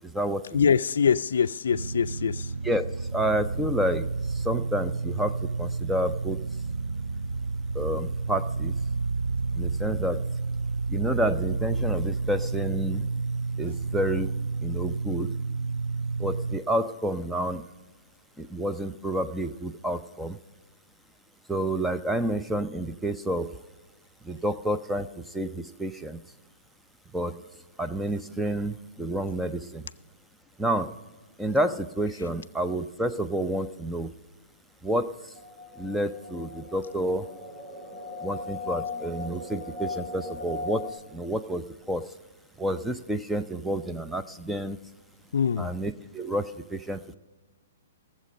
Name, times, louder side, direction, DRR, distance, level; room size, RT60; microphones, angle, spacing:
voice 1, 0.0-0.7 2.6-6.4 7.7-8.7 9.5-10.3 10.9-13.1 13.6-14.4 14.6-15.3 16.2-17.6 18.4-20.4 21.5-23.6 24.2-26.2 27.1-27.4 27.8-29.9 30.6-31.0 31.4-34.1 34.8-35.3 35.8-37.3 38.2-42.1 42.6-44.8 45.6-47.2, right 1 dB, 5° right, 0.6 m, -29 dB
voice 2, 0.5-2.5 45.3-45.7, left 7 dB, 75° left, 0.4 m, -24 dB
sound 1, 1.7-16.6, right 4 dB, 85° right, 0.5 m, -30 dB
sound 2, 35.4-40.9, left 3 dB, 30° right, 1.9 m, -38 dB
17.5 x 7.6 x 5.2 m
hypercardioid pair, 135°, 0 cm